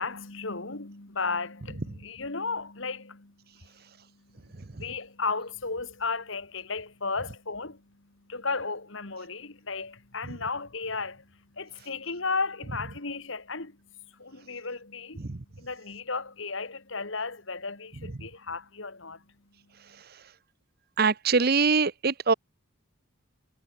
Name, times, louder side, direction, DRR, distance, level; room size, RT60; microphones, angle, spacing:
voice 1, 0.0-3.3 4.3-7.9 8.3-11.3 11.5-13.8 14.2-15.2 15.6-19.2, left 4 dB, 60° left, 2.0 m, -34 dB
voice 2, 21.0-22.3, right 4 dB, 45° right, 0.8 m, -23 dB
head